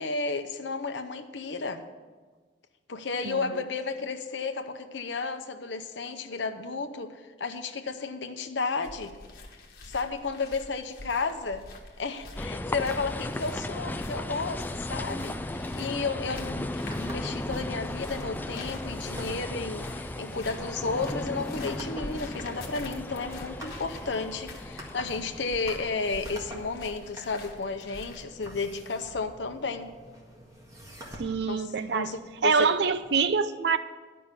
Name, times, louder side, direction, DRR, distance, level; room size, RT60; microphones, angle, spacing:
voice 1, 0.0-1.8 2.9-7.1 7.4-9.1 9.8-11.6 12.0-15.4 15.7-29.9 31.5-32.7, left 4 dB, 75° left, 7 dB, 0.8 m, -32 dB
sound 1, 8.8-28.2, left 2 dB, 50° left, 1.3 m, -46 dB
sound 2, 12.4-27.0, left 1 dB, 10° left, 0.3 m, -36 dB
sound 3, 16.1-33.1, equal, 20° right, 1.7 m, -48 dB
voice 2, 31.2-32.1 32.4-33.8, right 5 dB, 60° right, 12 dB, 0.5 m, -25 dB
11.0 x 5.6 x 8.2 m, 1.4 s
head